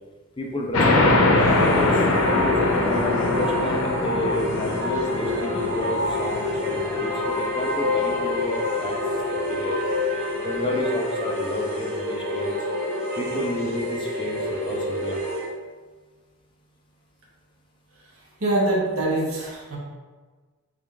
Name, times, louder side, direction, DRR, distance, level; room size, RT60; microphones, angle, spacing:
voice 1, 0.4-2.0 2.4-2.6 2.8-9.0 9.3-9.8 10.4-12.5 13.2-15.2, left 1 dB, 25° left, 0 dB, 0.3 m, -30 dB
sound 1, 0.7-7.9, left 2 dB, 85° left, 0.5 m, -23 dB
sound 2, 1.3-15.5, left 2 dB, 45° right, 0.7 m, -27 dB
voice 2, 18.0-19.8, right 1 dB, 75° right, -3 dB, 0.9 m, -25 dB
3.3 x 2.3 x 3.6 m, 1.4 s
head